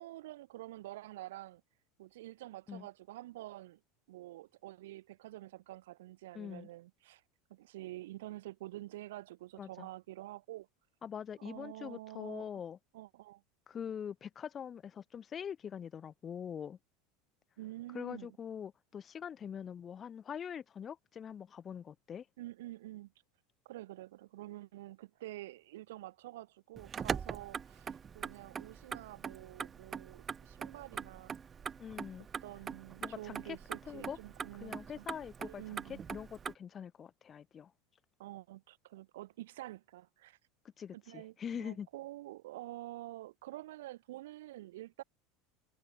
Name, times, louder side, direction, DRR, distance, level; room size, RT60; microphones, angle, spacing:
voice 1, 0.0-1.6 2.0-3.8 4.1-7.2 7.5-10.7 11.4-12.5 12.9-13.4 17.6-18.4 22.4-23.1 23.6-31.3 32.4-35.1 35.4-36.0 38.2-40.4 40.9-45.0, right 16 dB, 70° right, 3.1 m, -48 dB
voice 2, 6.3-6.7 9.6-9.9 11.0-12.8 13.7-16.8 17.9-22.2 31.8-32.3 33.0-33.6 33.9-34.2 34.6-35.6 35.9-37.7 40.8-41.9, left 8 dB, 35° left, 3.4 m, -43 dB
Motor vehicle (road), 26.8-36.5, right 7 dB, 30° right, 3.1 m, -43 dB
hypercardioid pair, 80°, 0 cm